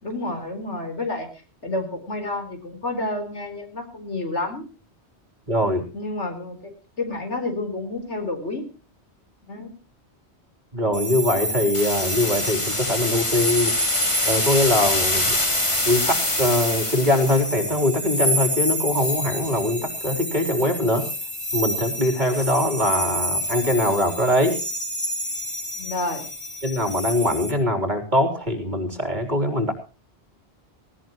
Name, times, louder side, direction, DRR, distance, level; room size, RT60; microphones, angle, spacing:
voice 1, 0.0-1.3 1.6-4.7 5.9-8.7 9.5-9.7 25.7-26.3, left 2 dB, 90° left, 5 dB, 4.6 m, -30 dB
voice 2, 5.5-5.9 10.7-13.7 14.2-15.4 15.9-21.1 21.5-24.6 26.6-29.7, left 1 dB, 40° right, 5 dB, 4.0 m, -22 dB
sound 1, 10.9-27.5, equal, 50° left, 4.2 m, -28 dB
sound 2, 11.7-17.4, left 1 dB, 25° left, 2.5 m, -25 dB
19.0 x 17.0 x 3.0 m, 0.34 s
omnidirectional pair, 1.2 m